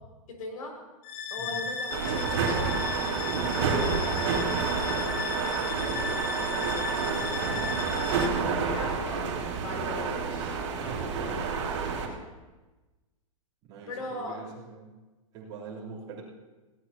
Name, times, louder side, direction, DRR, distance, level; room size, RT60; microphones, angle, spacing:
voice 1, 0.3-0.7 1.3-7.7 8.1-11.8 13.9-14.4, left 2 dB, 80° left, 1 dB, 5.8 m, -41 dB
sound 1, 1.0-8.3, left 5 dB, 35° left, 1.1 m, -35 dB
sound 2, 1.9-12.1, right 5 dB, 55° right, 3.4 m, -29 dB
voice 2, 11.1-11.5 13.6-15.0 15.3-16.2, right 5 dB, 20° right, -8 dB, 3.5 m, -43 dB
22.0 x 17.0 x 2.9 m, 1.2 s
supercardioid pair, 175°, 18 cm